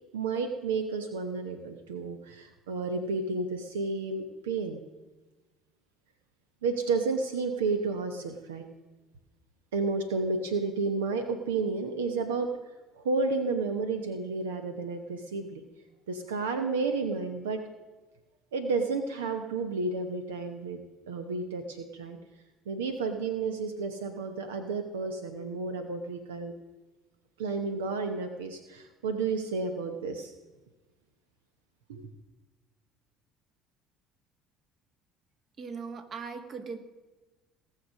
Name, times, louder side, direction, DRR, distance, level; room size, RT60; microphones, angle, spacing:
voice 1, 0.1-4.8 6.6-8.6 9.7-12.5 13.0-15.6 16.1-17.6 18.5-20.8 21.1-22.2 22.7-26.5 27.4-30.3 31.9-32.1, right 4 dB, 85° right, 7 dB, 0.9 m, -31 dB
voice 2, 35.6-36.8, right 5 dB, 45° right, 8 dB, 1.6 m, -39 dB
18.0 x 6.6 x 6.4 m, 1.2 s
hypercardioid pair, 65°, 0 cm